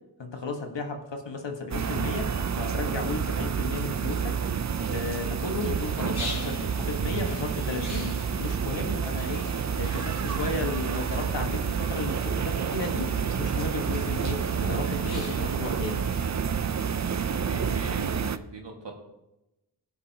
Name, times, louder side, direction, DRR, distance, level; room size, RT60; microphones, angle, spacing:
voice 1, 0.2-4.4 4.9-9.5 9.8-16.2, left 3 dB, 85° left, 3 dB, 1.5 m, -34 dB
sound 1, 1.7-18.4, right 7 dB, 40° right, 0.5 m, -29 dB
sound 2, 5.6-16.3, left 2 dB, 60° left, 2.8 m, -43 dB
voice 2, 17.4-18.9, right 3 dB, 80° right, 1 dB, 1.8 m, -40 dB
16.5 x 6.8 x 2.8 m, 0.94 s
cardioid pair, 40°, 42 cm